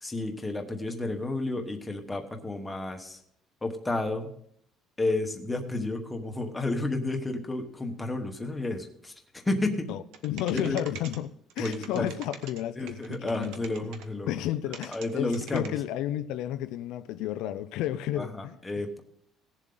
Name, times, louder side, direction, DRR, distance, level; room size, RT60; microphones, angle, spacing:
voice 1, 0.0-3.2 3.6-4.3 5.0-9.1 9.5-9.9 10.5-10.8 11.6-12.1 12.8-14.3 14.9-15.7 18.2-19.0, left 2 dB, 10° left, 1.2 m, -31 dB
voice 2, 9.9-13.9 14.3-18.6, left 12 dB, 75° left, 0.5 m, -32 dB
sound 1, 10.1-11.2 11.5-12.6 12.9-14.0 14.7-15.1 15.3-15.7, right 8 dB, 90° right, 1.2 m, -43 dB
18.0 x 7.3 x 3.8 m
cardioid pair, 170°, 0 cm